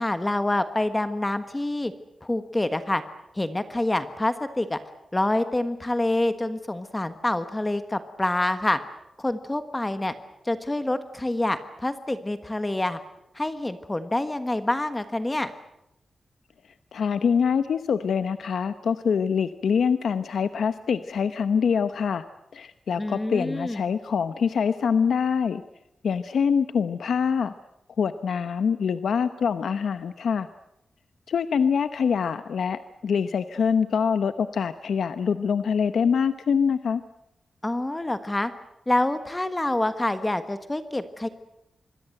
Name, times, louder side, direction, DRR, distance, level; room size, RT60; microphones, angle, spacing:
voice 1, 0.0-1.9 2.2-3.0 3.3-4.8 5.1-8.8 9.2-10.1 10.4-13.0 13.3-15.5 23.0-23.9 37.6-38.5 38.9-41.3, left 1 dB, 15° left, 10 dB, 1.3 m, -26 dB
voice 2, 16.9-22.2 22.5-25.6 26.0-27.5 28.0-30.5 31.3-37.0, left 6 dB, 90° left, 11 dB, 0.9 m, -24 dB
26.0 x 22.0 x 7.8 m, 0.84 s
wide cardioid pair, 160°, 0 cm